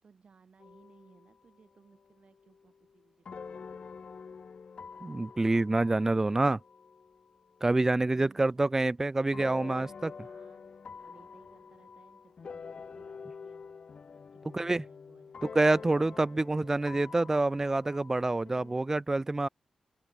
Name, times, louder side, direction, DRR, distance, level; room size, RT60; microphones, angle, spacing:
voice 1, 0.0-3.8 7.8-8.7 10.2-13.8 14.3-15.6, right 5 dB, 55° right, 4.5 m, -62 dB
sound 1, 0.6-1.6 1.9-8.2 9.3-18.8, left 5 dB, 60° left, 4.1 m, -47 dB
voice 2, 5.0-6.6 7.6-10.1 14.5-14.8 15.5-19.5, right 2 dB, 20° right, 0.5 m, -27 dB
open air
cardioid pair, 80°, 2 cm